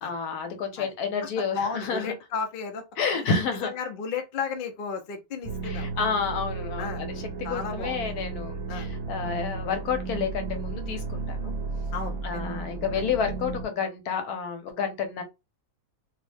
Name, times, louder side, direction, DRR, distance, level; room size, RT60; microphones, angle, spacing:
voice 1, 0.0-2.1 3.0-3.7 5.6-7.1 7.5-11.5 12.2-15.2, left 6 dB, 80° left, 1.2 m, -30 dB
voice 2, 1.4-2.8 3.1-3.3 3.6-6.1 6.8-7.1 7.4-8.1 8.7-8.9 11.9-12.5 12.9-13.0, left 5 dB, 60° left, 0.5 m, -34 dB
sound 1, 5.4-13.6, right 3 dB, 65° right, 0.9 m, -33 dB
2.7 x 2.1 x 3.2 m
omnidirectional pair, 1.6 m